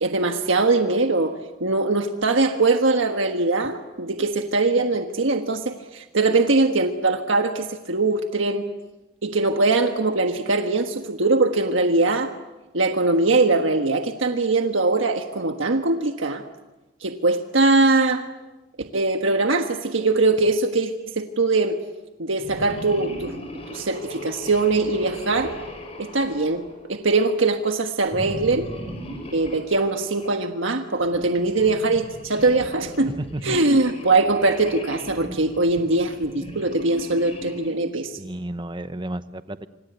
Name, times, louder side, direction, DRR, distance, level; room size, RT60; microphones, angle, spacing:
voice 1, 0.0-1.3 1.6-8.6 9.2-12.3 12.7-16.4 17.0-18.2 18.9-21.8 22.2-23.4 23.7-25.5 26.0-26.6 26.9-28.7 29.3-33.2 33.4-38.1, right 3 dB, 75° right, 5 dB, 1.5 m, -21 dB
sound 1, 22.4-27.2 28.1-30.4 31.0-37.8, equal, 30° left, 5.9 m, -38 dB
voice 2, 33.2-33.8 38.2-39.7, right 1 dB, 25° right, 12 dB, 1.0 m, -32 dB
26.5 x 26.5 x 8.1 m, 1.1 s
head